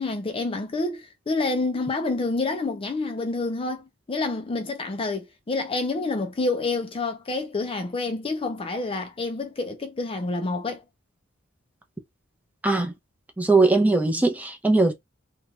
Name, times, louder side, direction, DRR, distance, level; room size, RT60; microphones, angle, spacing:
voice 1, 0.0-10.8, left 3 dB, 25° left, 0.5 m, -28 dB
voice 2, 13.4-14.9, right 3 dB, 10° right, 0.7 m, -20 dB
2.9 x 2.3 x 3.1 m
head